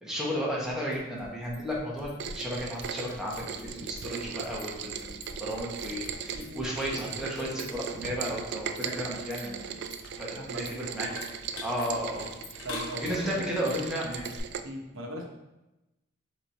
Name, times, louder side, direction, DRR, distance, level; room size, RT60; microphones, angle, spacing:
voice 1, 0.0-9.7 10.2-11.1 11.6-12.3 12.9-14.3, equal, 5° right, -5 dB, 1.0 m, -33 dB
sound 1, 0.6-14.4, left 2 dB, 80° left, 1.0 m, -46 dB
Rain, 2.2-14.6, right 7 dB, 60° right, 0.3 m, -38 dB
voice 2, 10.3-11.2 12.6-13.7 14.6-15.3, equal, 85° right, 1 dB, 0.8 m, -40 dB
4.2 x 3.0 x 4.1 m, 0.98 s
head